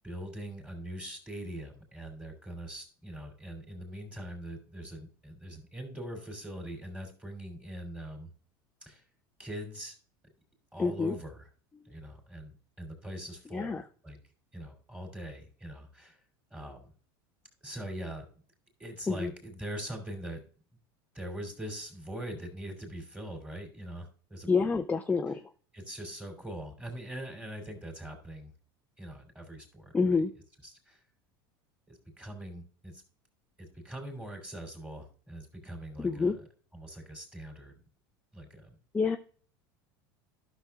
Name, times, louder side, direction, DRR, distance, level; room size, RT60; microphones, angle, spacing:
voice 1, 0.0-8.3 8.8-9.0 9.4-9.9 10.7-11.5 11.8-14.2 14.5-16.2 16.5-16.9 17.6-18.3 18.8-20.4 21.1-24.5 25.7-28.5 29.0-30.2 30.6-31.0 31.9-33.0 33.6-36.5 36.7-37.8 38.3-38.7, right 1 dB, 10° right, 3 dB, 2.9 m, -42 dB
voice 2, 10.8-11.1 13.5-13.8 19.1-19.3 24.5-25.4 29.9-30.3 36.0-36.4 38.9-39.2, left 4 dB, 15° left, 7 dB, 0.5 m, -27 dB
12.5 x 6.3 x 2.3 m, 0.43 s
supercardioid pair, 100°, 12 cm